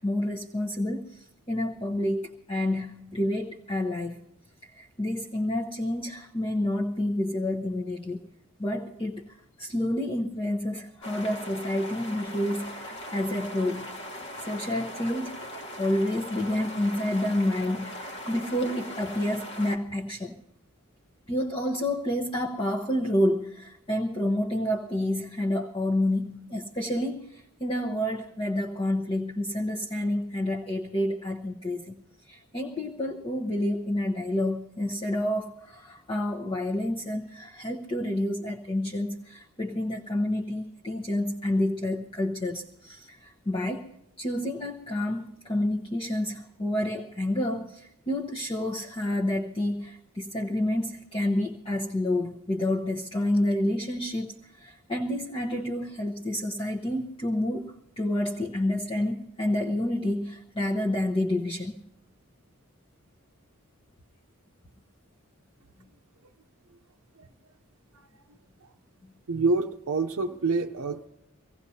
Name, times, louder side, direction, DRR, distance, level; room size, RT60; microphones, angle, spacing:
voice 1, 0.0-4.2 4.6-8.2 8.6-13.9 14.4-15.3 15.8-20.4 21.3-31.9 32.2-43.9 44.2-61.7, left 1 dB, 25° left, -2 dB, 0.8 m, -29 dB
sound 1, 11.0-19.8, equal, 50° left, 1.4 m, -40 dB
voice 2, 68.3-68.7 69.3-71.1, right 3 dB, 70° right, 2 dB, 0.6 m, -28 dB
24.0 x 16.5 x 2.8 m, 0.83 s
head